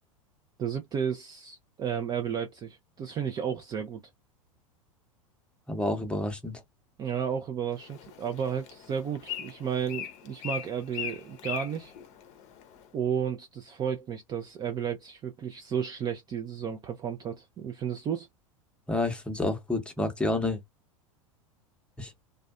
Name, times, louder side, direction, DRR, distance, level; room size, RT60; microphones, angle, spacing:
voice 1, 0.6-4.0 7.0-11.9 12.9-18.3, right 8 dB, 25° right, 0.4 m, -33 dB
voice 2, 5.7-6.6 18.9-20.6 22.0-22.1, left 2 dB, 5° left, 0.7 m, -29 dB
Bird, 7.7-12.9, left 9 dB, 40° left, 0.6 m, -40 dB
2.4 x 2.2 x 2.3 m
figure-of-eight pair, 90°, 18 cm